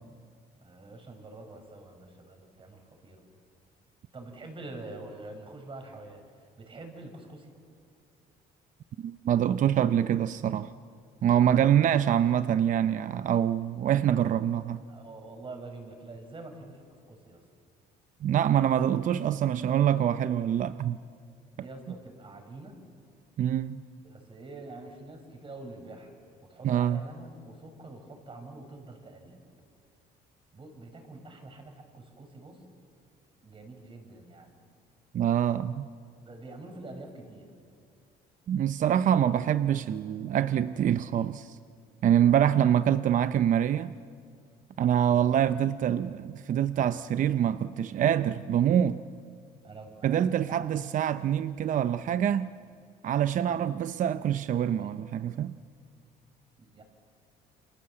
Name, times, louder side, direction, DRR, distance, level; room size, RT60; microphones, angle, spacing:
voice 1, 0.6-3.2 4.1-7.5 11.2-11.8 13.8-14.4 14.9-16.8 17.1-17.4 18.7-18.9 21.5-22.8 24.0-26.1 26.4-29.4 30.5-32.6 33.4-34.6 36.2-37.5 45.0-45.4 49.6-50.8 53.4-53.7 54.8-54.9 56.6-56.8, right 2 dB, 30° right, 5.7 m, -46 dB
voice 2, 9.0-10.7 11.2-14.8 18.2-21.0 23.4-23.8 26.6-27.0 35.1-35.9 38.5-41.6 42.0-43.9 44.8-49.0 50.0-52.5 53.0-55.5, right 10 dB, 50° right, 0.7 m, -25 dB
28.5 x 27.0 x 7.7 m
cardioid pair, 110°, 17 cm